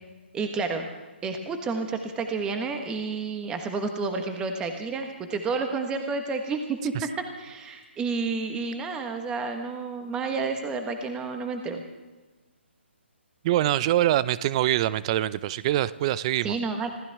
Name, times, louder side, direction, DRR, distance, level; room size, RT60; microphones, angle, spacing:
voice 1, 0.3-0.9 1.2-7.1 7.4-11.8 16.4-16.9, right 4 dB, 10° right, 5 dB, 1.4 m, -30 dB
voice 2, 13.4-16.6, right 13 dB, 30° right, 18 dB, 0.5 m, -24 dB
26.0 x 15.5 x 3.6 m, 1.2 s
figure-of-eight pair, 140°, 6 cm